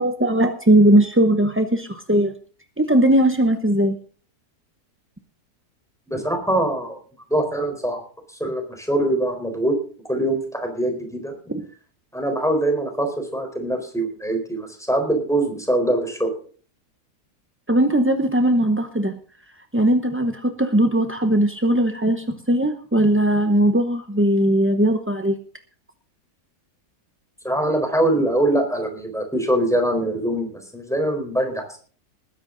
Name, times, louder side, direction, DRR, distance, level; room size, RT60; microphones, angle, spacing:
voice 1, 0.0-2.3 2.8-4.0 11.5-11.6 17.7-19.2 19.7-25.4, right 1 dB, 15° right, 6 dB, 0.5 m, -19 dB
voice 2, 6.1-7.0 7.3-8.0 8.3-9.7 10.1-11.3 12.1-16.3 27.4-31.8, right 1 dB, ahead, 4 dB, 4.1 m, -23 dB
20.0 x 10.5 x 3.9 m, 0.43 s
omnidirectional pair, 1.7 m